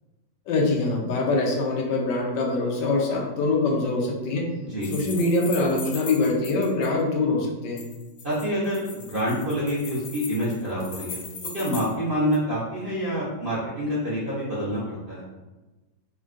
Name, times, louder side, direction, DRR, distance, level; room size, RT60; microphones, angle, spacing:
voice 1, 0.5-4.5 4.9-7.8, left 2 dB, 90° left, -1 dB, 1.3 m, -24 dB
sound 1, 4.8-6.9 7.8-11.9 12.3-12.4, left 4 dB, 70° left, 0.7 m, -39 dB
voice 2, 8.2-11.2 11.5-15.3, equal, 50° right, -9 dB, 0.6 m, -27 dB
3.6 x 2.2 x 2.4 m, 1.1 s
omnidirectional pair, 1.8 m